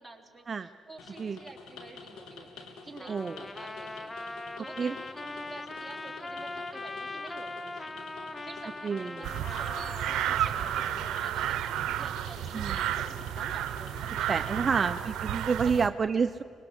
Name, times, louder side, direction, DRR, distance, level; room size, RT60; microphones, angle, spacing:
voice 1, 0.0-14.9 15.4-15.8, right 3 dB, 10° right, 0 dB, 3.6 m, -49 dB
sound 1, 1.0-15.1, left 4 dB, 80° left, 3.0 m, -48 dB
Trumpet, 3.0-11.3, left 2 dB, 15° left, 1.0 m, -41 dB
voice 2, 8.8-9.3 12.5-12.8 14.3-16.4, right 5 dB, 40° right, 10 dB, 0.5 m, -29 dB
sound 2, 9.2-15.9, right 11 dB, 80° right, 0.8 m, -32 dB
25.0 x 21.0 x 8.2 m, 2.6 s
cardioid pair, 80°, 0 cm